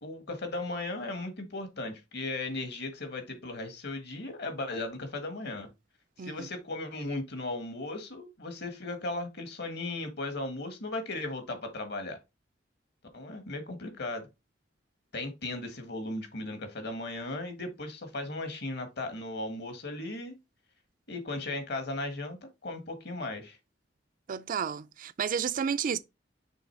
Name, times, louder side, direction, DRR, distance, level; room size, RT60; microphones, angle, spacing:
voice 1, 0.0-5.7 6.2-12.2 13.1-14.3 15.1-20.4 21.1-23.6, left 2 dB, 65° left, 1.5 m, -36 dB
voice 2, 6.2-6.5 24.3-26.0, right 7 dB, 45° right, 0.4 m, -31 dB
6.3 x 3.3 x 4.5 m
head